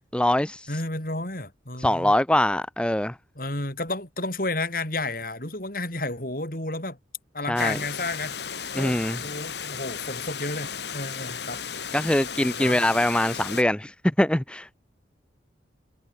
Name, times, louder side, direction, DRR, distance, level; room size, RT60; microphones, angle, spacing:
voice 1, 0.1-0.7 1.8-3.2 7.5-7.8 8.7-9.2 11.9-14.7, left 1 dB, 5° left, 0.4 m, -23 dB
voice 2, 0.7-2.1 3.4-7.0 7.3-8.3 8.7-11.6 12.6-12.8, left 2 dB, 50° left, 7.5 m, -31 dB
Water, 7.6-13.6, left 7 dB, 70° left, 2.9 m, -35 dB
head